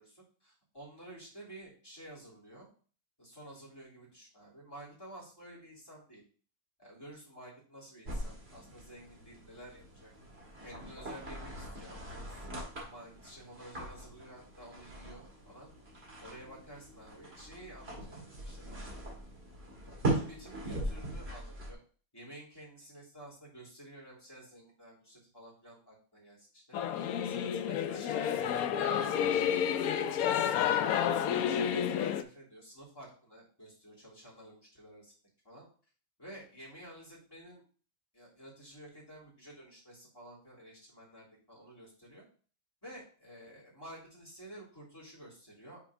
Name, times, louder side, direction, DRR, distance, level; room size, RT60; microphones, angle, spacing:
voice 1, 0.0-2.7 3.2-6.2 6.8-10.1 10.6-15.7 16.2-18.2 18.4-19.0 20.1-21.8 22.1-30.8 31.3-35.1 35.4-35.7 36.2-37.6 38.1-42.2 42.8-45.9, right 1 dB, 15° left, -6 dB, 3.2 m, -52 dB
sound 1, 8.0-21.7, right 2 dB, 45° right, 2.2 m, -40 dB
Singing / Musical instrument, 26.7-32.2, left 9 dB, 80° left, 1.1 m, -30 dB
6.2 x 4.3 x 4.8 m, 0.41 s
omnidirectional pair, 1.5 m